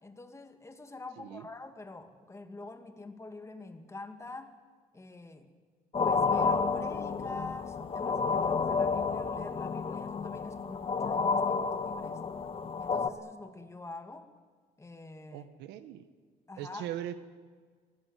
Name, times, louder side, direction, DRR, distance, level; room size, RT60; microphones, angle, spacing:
voice 1, 0.0-4.6 4.9-5.5 6.0-12.2 12.8-14.3 14.8-15.5 16.5-16.9, left 2 dB, 15° left, 6 dB, 2.4 m, -46 dB
voice 2, 1.2-1.5 15.3-16.0 16.6-17.2, right 11 dB, 90° right, 11 dB, 1.5 m, -40 dB
sound 1, 5.9-13.1, left 5 dB, 35° left, 1.4 m, -30 dB
23.0 x 19.0 x 9.5 m, 1.5 s
cardioid pair, 110°, 17 cm